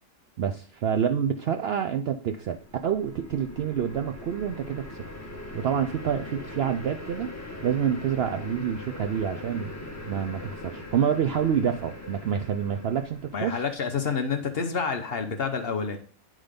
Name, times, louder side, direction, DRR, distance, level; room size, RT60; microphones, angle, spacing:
voice 1, 0.4-2.6 2.8-5.0 5.5-9.7 10.0-13.6, right 8 dB, 65° right, 6 dB, 0.6 m, -27 dB
sound 1, 2.3-13.7, left 2 dB, 10° left, 1.4 m, -41 dB
voice 2, 13.3-16.0, left 5 dB, 50° left, 6 dB, 0.9 m, -28 dB
9.9 x 3.8 x 5.1 m, 0.44 s
omnidirectional pair, 1.5 m